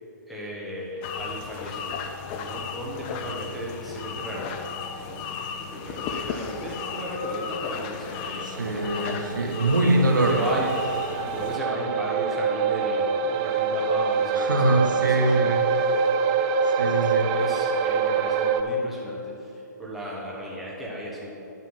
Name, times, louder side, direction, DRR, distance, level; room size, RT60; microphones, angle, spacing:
voice 1, 0.3-4.6 5.0-5.3 5.6-8.9 9.6-15.7 17.0-21.3, equal, ahead, -6 dB, 1.5 m, -35 dB
sound 1, 1.0-11.6, left 6 dB, 30° left, 0.6 m, -35 dB
sound 2, 8.2-18.6, right 5 dB, 30° right, 0.4 m, -25 dB
voice 2, 8.4-10.4 14.4-15.6 16.6-17.3, right 2 dB, 90° right, 3 dB, 1.2 m, -23 dB
9.4 x 5.8 x 5.7 m, 2.9 s
hypercardioid pair, 140°, 10 cm